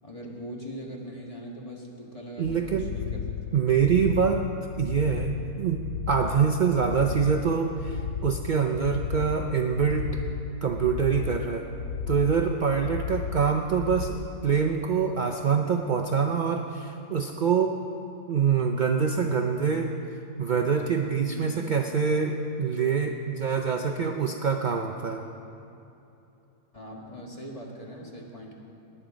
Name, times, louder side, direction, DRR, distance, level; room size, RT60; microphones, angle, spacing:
voice 1, 0.0-3.3 21.3-21.6 26.7-28.5, equal, 20° left, -2 dB, 1.8 m, -41 dB
sound 1, 2.4-14.1, left 7 dB, 60° left, 0.9 m, -34 dB
voice 2, 2.4-2.9 3.5-4.5 4.8-10.1 10.6-11.7 12.1-17.8 18.3-19.9 20.4-25.2, right 6 dB, 70° right, 2 dB, 0.4 m, -25 dB
18.5 x 10.0 x 5.0 m, 2.9 s
omnidirectional pair, 1.6 m